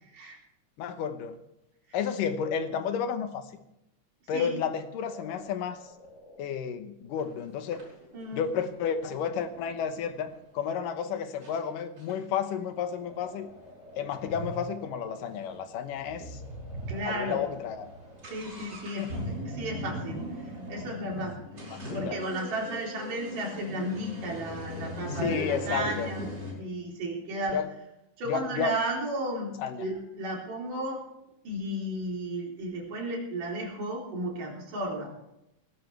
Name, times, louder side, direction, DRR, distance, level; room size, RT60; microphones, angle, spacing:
voice 1, 0.8-1.4 1.9-3.5 4.3-5.8 6.4-7.8 8.3-13.5 14.0-16.4 17.1-17.9 19.0-19.1 21.6-22.2 25.1-26.1 27.5-27.7 28.3-28.7 29.6-29.9, left 7 dB, 90° left, 8 dB, 2.8 m, -32 dB
sound 1, 5.1-10.2 12.7-19.1, right 1 dB, 30° left, 5.4 m, -46 dB
sound 2, 7.2-7.3 7.7-10.4 11.0-11.1 11.4-11.6 12.0-15.6 15.9-16.0 16.2-16.3 16.9-17.1 17.4-26.5, left 1 dB, 30° right, 5.7 m, -39 dB
voice 2, 8.1-8.5 16.9-17.5 18.2-20.2 20.7-21.7 21.9-26.3 26.6-27.6 28.2-31.0 31.5-35.1, right 1 dB, 80° right, -2 dB, 5.3 m, -34 dB
19.0 x 16.5 x 3.4 m, 0.85 s
omnidirectional pair, 3.7 m